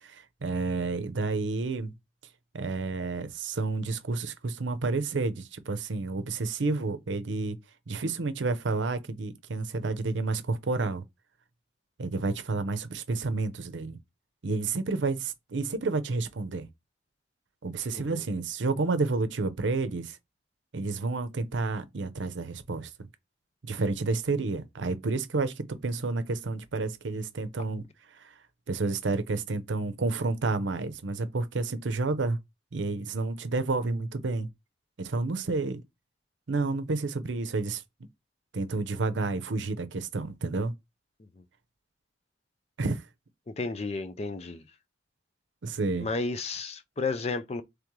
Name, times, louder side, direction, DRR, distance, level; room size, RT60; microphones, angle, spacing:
voice 1, 0.0-1.9 2.5-7.6 7.9-11.0 12.0-14.0 14.4-16.7 17.6-20.2 20.7-22.9 23.6-25.5 25.8-27.8 28.2-28.3 28.7-32.4 32.7-34.5 35.0-35.8 36.5-37.8 38.5-40.7 42.8-43.0 45.6-46.1, right 3 dB, 90° right, 0.6 m, -30 dB
voice 2, 43.5-44.6 46.0-47.6, left 3 dB, 35° left, 0.4 m, -32 dB
3.3 x 3.1 x 3.6 m
head